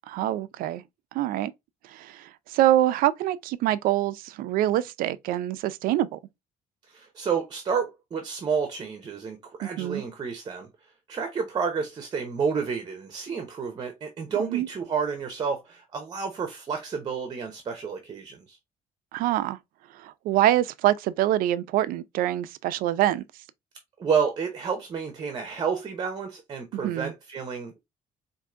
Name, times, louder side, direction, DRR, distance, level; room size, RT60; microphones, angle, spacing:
voice 1, 0.1-0.8 1.1-1.5 1.9-6.2 9.6-10.0 14.4-14.7 19.1-19.6 20.0-23.2 26.7-27.1, right 13 dB, 85° right, 0.4 m, -25 dB
voice 2, 6.9-10.7 11.1-18.6 24.0-27.8, right 6 dB, 30° right, 0.7 m, -30 dB
4.5 x 2.6 x 2.4 m
cardioid pair, 150°, 14 cm